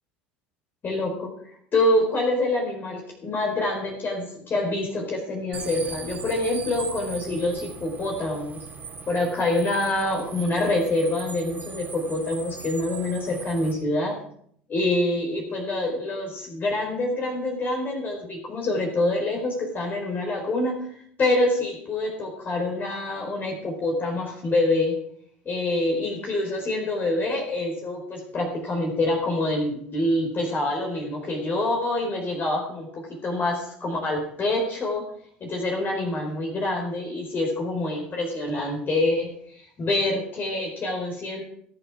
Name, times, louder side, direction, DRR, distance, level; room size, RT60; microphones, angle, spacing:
voice 1, 0.8-1.3 1.7-8.6 9.1-14.2 14.7-25.0 25.4-35.0 35.4-41.4, left 2 dB, 35° left, 1 dB, 4.4 m, -26 dB
sound 1, 5.5-13.7, right 5 dB, 30° right, 3.1 m, -39 dB
21.0 x 8.1 x 4.9 m, 0.66 s
hypercardioid pair, 80°, 5 cm